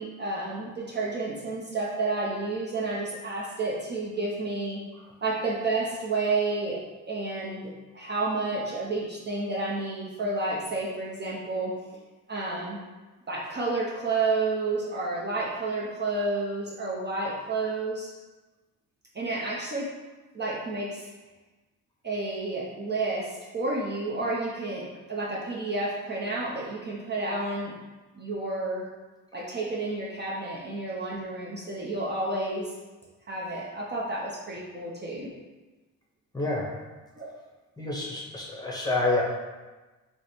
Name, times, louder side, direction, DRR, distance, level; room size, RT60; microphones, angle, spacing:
voice 1, 0.0-4.8 5.2-6.8 7.1-11.7 12.3-12.8 13.3-18.1 19.1-19.9 20.3-21.1 22.0-27.7 28.2-28.9 29.3-32.7 33.3-35.3 37.2-37.3, right 3 dB, 30° right, -5 dB, 0.6 m, -30 dB
voice 2, 36.3-36.8 37.8-39.2, left 2 dB, 10° left, -4 dB, 0.8 m, -28 dB
3.3 x 2.0 x 4.2 m, 1.2 s
cardioid pair, 105°, 34 cm